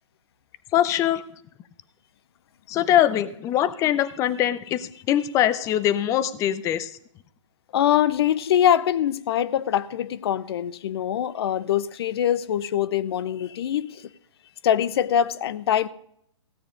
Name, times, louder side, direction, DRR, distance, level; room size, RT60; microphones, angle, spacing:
voice 1, 0.7-1.2 2.7-6.9, left 11 dB, 20° left, 0.6 m, -22 dB
voice 2, 7.7-14.1 14.6-15.9, left 10 dB, 50° left, 0.7 m, -23 dB
15.5 x 8.9 x 5.1 m
hypercardioid pair, 140°, 16 cm